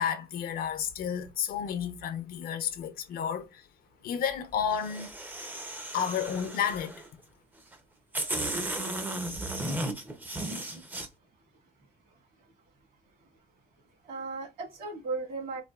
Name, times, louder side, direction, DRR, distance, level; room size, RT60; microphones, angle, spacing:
voice 1, 0.0-3.7 4.0-5.2 5.9-6.9, left 8 dB, 60° left, 0.6 m, -31 dB
sound 1, 4.7-7.1 7.7-7.8 8.1-11.1, right 1 dB, 10° right, 0.5 m, -35 dB
voice 2, 12.0-12.5 13.2-13.3 14.0-15.6, right 3 dB, 60° right, 1.5 m, -37 dB
4.0 x 2.6 x 2.2 m
cardioid pair, 165°, 17 cm